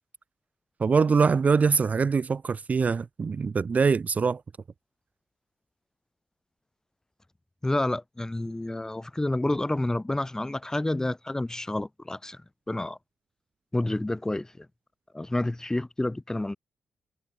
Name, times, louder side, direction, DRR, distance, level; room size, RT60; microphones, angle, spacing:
voice 1, 0.8-4.4, right 5 dB, 45° right, 0.8 m, -23 dB
voice 2, 7.6-12.4 12.7-13.0 13.7-14.7 15.1-16.6, left 1 dB, 15° left, 5.3 m, -29 dB
supercardioid pair, 55°, 4 cm